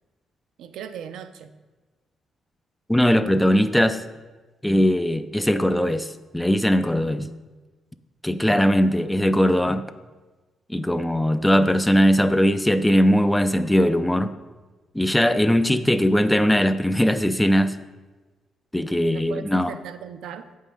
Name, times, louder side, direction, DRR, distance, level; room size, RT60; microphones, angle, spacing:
voice 1, 0.6-1.5 19.1-20.5, right 8 dB, 85° right, 9 dB, 0.6 m, -37 dB
voice 2, 2.9-4.0 4.6-7.3 8.2-9.8 10.7-14.3 14.9-17.7 18.7-19.7, equal, 5° left, 11 dB, 0.4 m, -20 dB
8.0 x 5.5 x 6.3 m, 1.2 s
cardioid pair, 140°, 0 cm